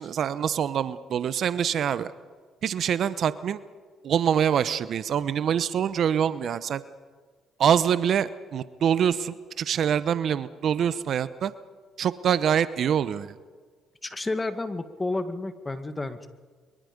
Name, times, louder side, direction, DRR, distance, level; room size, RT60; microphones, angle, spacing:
voice 1, 0.0-2.1 2.6-3.6 4.0-6.8 7.6-11.5 12.0-13.3, right 8 dB, 60° right, 15 dB, 0.9 m, -25 dB
voice 2, 14.0-16.3, left 2 dB, 20° left, 10 dB, 2.0 m, -31 dB
24.0 x 23.0 x 5.3 m, 1.5 s
supercardioid pair, 60°, 0 cm